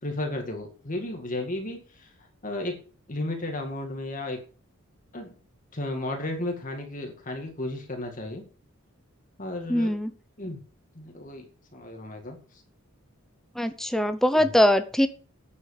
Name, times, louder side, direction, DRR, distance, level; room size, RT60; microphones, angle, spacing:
voice 1, 0.0-2.1 2.4-2.8 3.1-4.4 5.1-5.3 5.7-8.4 9.4-9.9 10.4-10.6 10.9-11.5 11.7-12.4 14.3-14.5, left 1 dB, 40° left, 3 dB, 2.1 m, -33 dB
voice 2, 9.7-10.1 13.6-15.1, equal, ahead, 9 dB, 0.8 m, -22 dB
10.0 x 8.1 x 6.5 m, 0.38 s
head